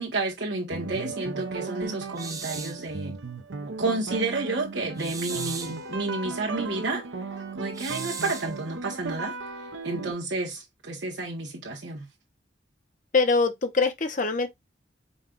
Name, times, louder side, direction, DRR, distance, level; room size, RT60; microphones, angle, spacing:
voice 1, 0.0-3.1 3.7-7.0 7.6-9.3 9.8-12.1, right 3 dB, 70° right, 1.1 m, -31 dB
sound 1, 0.7-10.1, right 4 dB, 90° right, 0.7 m, -36 dB
sound 2, 2.2-2.8 5.0-5.8 7.7-8.5, right 5 dB, 20° right, 0.6 m, -37 dB
voice 2, 13.1-14.5, left 4 dB, 45° left, 0.7 m, -23 dB
5.2 x 2.2 x 3.8 m
head